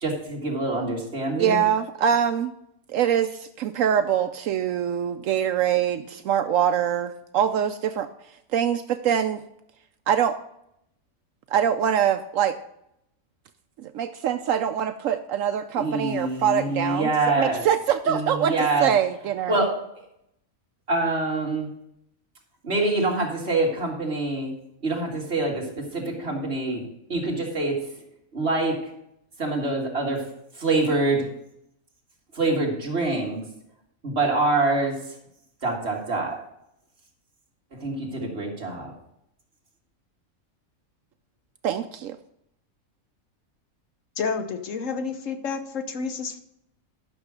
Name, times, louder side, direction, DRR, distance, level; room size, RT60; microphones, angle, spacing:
voice 1, 0.0-1.6 15.8-17.6 18.1-18.9 19.5-19.8 20.9-21.7 22.6-24.5 24.8-26.8 27.1-27.8 28.3-28.9 29.4-30.3 30.5-31.3 32.3-33.4 34.0-35.2 35.6-36.4 37.7-38.9, right 2 dB, 45° right, -1 dB, 2.4 m, -25 dB
voice 2, 1.4-2.5 2.9-8.1 8.5-9.4 10.1-10.4 11.5-12.6 13.8-18.5 18.8-19.6 41.6-42.2, right 9 dB, 75° right, 9 dB, 0.9 m, -24 dB
voice 3, 44.2-46.4, left 5 dB, 65° left, 8 dB, 1.2 m, -30 dB
11.5 x 6.3 x 4.9 m, 0.77 s
omnidirectional pair, 1.5 m